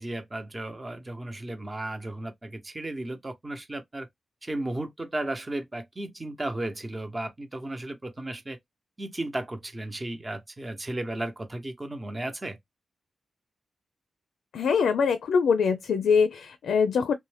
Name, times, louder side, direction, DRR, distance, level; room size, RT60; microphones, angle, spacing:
voice 1, 0.0-4.1 4.4-8.6 9.0-12.6, right 1 dB, 25° right, 0.8 m, -34 dB
voice 2, 14.5-17.1, left 6 dB, 85° left, 0.4 m, -23 dB
2.5 x 2.1 x 3.2 m
cardioid pair, 65°, 0 cm